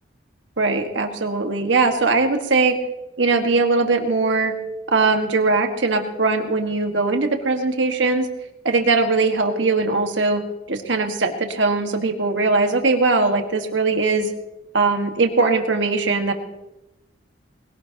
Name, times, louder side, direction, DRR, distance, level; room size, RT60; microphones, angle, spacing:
voice 1, 0.6-2.8 3.2-4.5 4.9-8.3 8.7-10.4 10.7-14.3 14.7-16.3, right 3 dB, 75° right, 5 dB, 1.6 m, -20 dB
20.5 x 18.0 x 2.9 m, 0.96 s
head